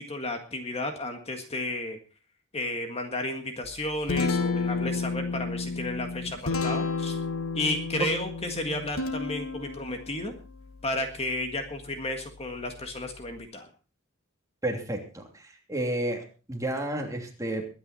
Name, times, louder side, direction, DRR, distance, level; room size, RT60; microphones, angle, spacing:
voice 1, 0.0-2.0 2.5-7.2 7.5-10.3 10.8-13.7, left 2 dB, 30° left, 5 dB, 1.8 m, -32 dB
Guitar, 3.6-13.4, left 4 dB, 80° left, 1.6 m, -33 dB
voice 2, 14.6-17.7, right 1 dB, 15° right, 2 dB, 2.9 m, -31 dB
22.0 x 9.5 x 4.2 m, 0.35 s
head